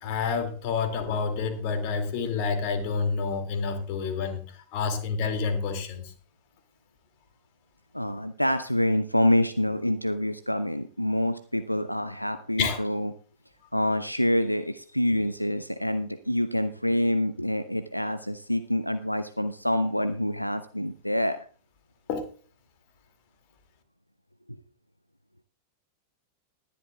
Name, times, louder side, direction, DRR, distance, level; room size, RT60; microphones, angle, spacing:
voice 1, 0.0-6.1 12.6-12.8 22.1-22.3, left 5 dB, 45° left, 6 dB, 2.4 m, -28 dB
voice 2, 7.9-13.1 13.7-21.5, left 1 dB, 90° left, 12 dB, 0.4 m, -26 dB
20.0 x 11.0 x 2.3 m, 0.39 s
figure-of-eight pair, 90°, 0 cm